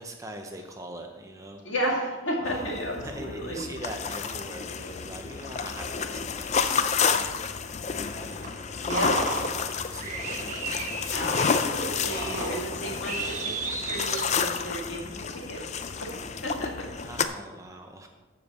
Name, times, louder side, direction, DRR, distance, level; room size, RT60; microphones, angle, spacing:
voice 1, 0.0-1.6 2.4-10.8 17.1-18.1, right 1 dB, 15° right, 3 dB, 0.6 m, -43 dB
voice 2, 1.6-3.7 8.9-9.1 11.1-15.6 16.0-16.1 16.4-16.9, equal, 65° left, -2 dB, 2.3 m, -33 dB
sound 1, 2.5-17.3, left 6 dB, 35° left, 0.4 m, -30 dB
sound 2, 8.4-14.6, right 2 dB, 40° right, 1.1 m, -34 dB
14.0 x 5.2 x 4.2 m, 1.4 s
head